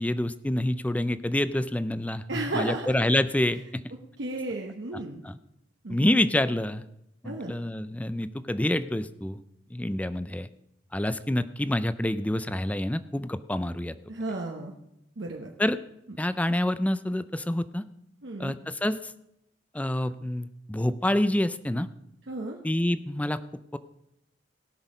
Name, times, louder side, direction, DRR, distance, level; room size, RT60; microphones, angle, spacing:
voice 1, 0.0-3.8 4.9-5.4 5.9-6.9 7.2-9.4 9.7-10.5 10.9-13.9 15.6-15.8 16.2-17.9 18.4-19.1 19.7-21.9 22.6-23.4 23.7-23.8, left 1 dB, 10° left, 14 dB, 0.4 m, -27 dB
voice 2, 2.3-3.0 4.2-5.2 5.8-6.1 7.2-7.5 14.1-14.7 15.2-15.5 18.2-18.5 22.3-22.6, right 2 dB, 70° right, 0 dB, 1.0 m, -33 dB
17.5 x 6.2 x 5.3 m, 0.79 s
head